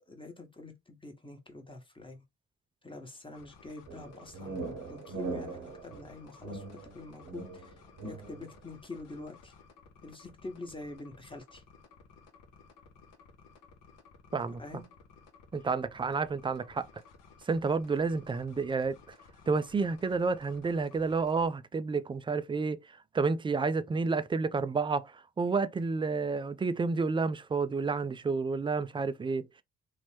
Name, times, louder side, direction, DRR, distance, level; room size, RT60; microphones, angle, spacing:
voice 1, 0.0-2.2 2.8-7.7 8.0-9.5 10.0-11.6 14.6-14.9, left 2 dB, 15° left, 1.0 m, -46 dB
sound 1, 3.3-21.5, left 5 dB, 75° left, 0.8 m, -57 dB
sound 2, 3.9-8.5, right 3 dB, 75° right, 0.9 m, -41 dB
voice 2, 15.5-16.9 17.5-19.0 19.5-22.8 23.1-29.6, right 4 dB, 15° right, 0.3 m, -30 dB
3.0 x 2.0 x 3.2 m
hypercardioid pair, 45°, 32 cm